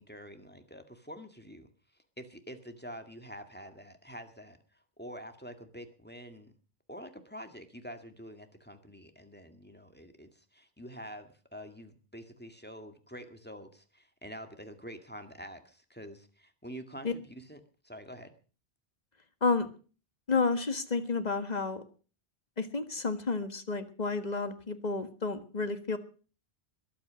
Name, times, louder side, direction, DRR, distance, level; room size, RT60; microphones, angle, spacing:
voice 1, 0.0-6.5 6.9-18.3, equal, 10° left, 7 dB, 1.9 m, -47 dB
voice 2, 19.4-19.7 20.3-21.8 22.6-26.0, left 4 dB, 40° left, 9 dB, 1.7 m, -31 dB
21.5 x 8.8 x 6.3 m, 0.39 s
omnidirectional pair, 1.1 m